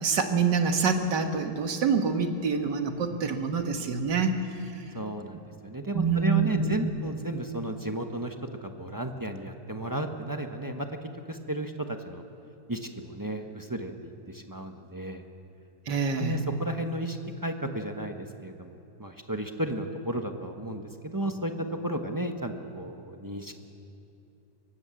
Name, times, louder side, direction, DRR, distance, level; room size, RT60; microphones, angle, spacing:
voice 1, 0.0-4.4 5.9-7.0 15.9-16.4, right 5 dB, 85° right, 5 dB, 2.2 m, -26 dB
voice 2, 4.9-8.3 8.6-12.2 12.7-15.2 16.2-23.5, right 1 dB, 15° right, 4 dB, 1.0 m, -33 dB
23.5 x 18.0 x 7.7 m, 2.7 s
omnidirectional pair, 1.8 m